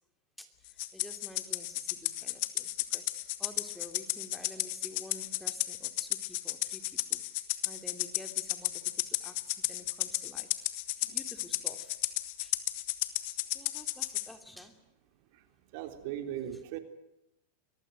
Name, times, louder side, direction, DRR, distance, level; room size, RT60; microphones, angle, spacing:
Rattle (instrument), 0.8-14.3, left 19 dB, 60° left, 2.0 m, -33 dB
voice 1, 0.9-3.1 3.4-6.8 7.1-7.2 7.6-8.9 9.2-9.4 9.7-10.5 11.1-12.0 12.4-12.5 13.5-14.7 16.5-16.6, left 1 dB, 5° left, 7 dB, 2.9 m, -49 dB
voice 2, 15.7-16.8, right 11 dB, 60° right, 8 dB, 3.4 m, -38 dB
23.0 x 20.0 x 9.3 m, 0.89 s
hypercardioid pair, 115°, 0 cm